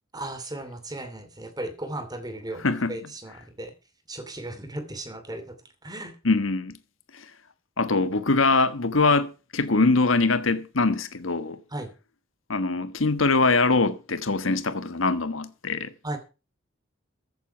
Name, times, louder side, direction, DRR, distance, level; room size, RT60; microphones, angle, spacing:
voice 1, 0.1-3.7 4.1-5.5 5.8-6.1 11.7-11.9 16.0-16.2, right 1 dB, 20° right, 2.7 m, -36 dB
voice 2, 2.6-3.0 6.2-6.8 7.1-7.2 7.8-11.6 12.5-15.9, left 3 dB, 85° left, 1.3 m, -23 dB
15.0 x 8.1 x 5.7 m
head